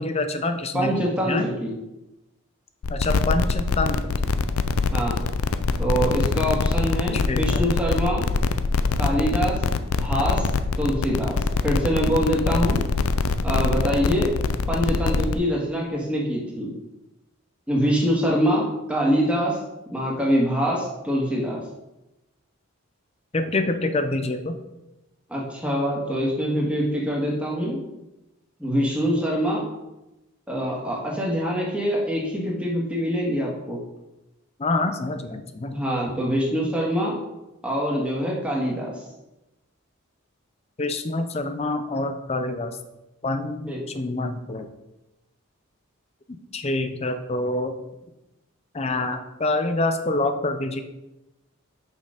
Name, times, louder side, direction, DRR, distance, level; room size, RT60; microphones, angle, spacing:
voice 1, 0.0-1.5 2.9-4.1 7.1-7.6 23.3-24.6 34.6-35.8 40.8-42.8 43.2-44.7 46.5-47.8 48.7-50.8, left 2 dB, 30° left, 8 dB, 0.6 m, -26 dB
voice 2, 0.7-1.7 4.9-5.2 5.8-8.3 9.0-9.6 10.0-10.5 10.8-12.8 13.4-14.3 14.7-16.7 17.7-19.6 19.9-21.6 25.3-27.8 28.6-29.7 30.5-33.8 35.7-37.2 37.6-38.9 43.7-43.8, equal, 5° right, -3 dB, 1.7 m, -24 dB
sound 1, 2.8-15.3, left 4 dB, 85° left, 0.5 m, -24 dB
6.5 x 5.5 x 5.0 m, 0.97 s
head